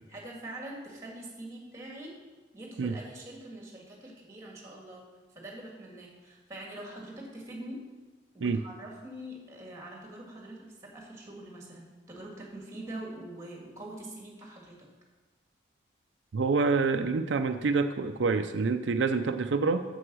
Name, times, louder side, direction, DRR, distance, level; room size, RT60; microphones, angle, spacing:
voice 1, 0.1-2.2 2.5-7.9 8.3-14.9, right 1 dB, 15° right, -1 dB, 1.9 m, -44 dB
voice 2, 16.3-19.8, right 4 dB, 85° right, 8 dB, 0.5 m, -27 dB
7.8 x 7.0 x 6.2 m, 1.3 s
head